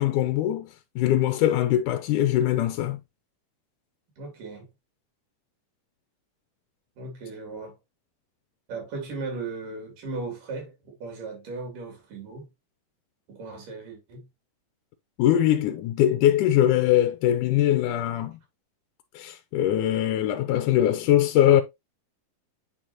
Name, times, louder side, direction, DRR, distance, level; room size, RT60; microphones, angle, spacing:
voice 1, 0.0-3.0 15.2-18.4 19.1-21.6, left 12 dB, 80° left, 2.0 m, -22 dB
voice 2, 4.2-4.7 7.0-7.8 8.7-12.5 13.3-14.3, right 3 dB, 70° right, 4.2 m, -37 dB
9.2 x 4.4 x 2.8 m
omnidirectional pair, 4.0 m